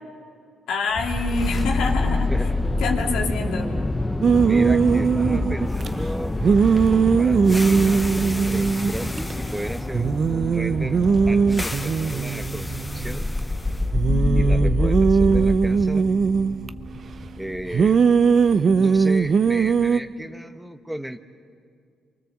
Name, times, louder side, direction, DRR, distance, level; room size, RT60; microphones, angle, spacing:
voice 1, 0.7-2.3 2.8-3.7 14.0-14.2, left 3 dB, 85° left, 1 dB, 2.8 m, -26 dB
sound 1, 1.0-19.0, left 2 dB, 15° left, 1.0 m, -26 dB
voice 2, 2.3-2.6 4.4-6.4 6.9-13.3 14.3-16.1 17.4-18.0 18.8-21.2, right 1 dB, 5° right, 9 dB, 1.1 m, -34 dB
sound 2, 4.2-5.9 6.4-9.3 9.6-9.7 9.9-13.4 13.9-16.7 17.7-20.0, right 5 dB, 50° right, 0.7 m, -20 dB
28.5 x 23.5 x 7.3 m, 2.2 s
cardioid pair, 90°, 0 cm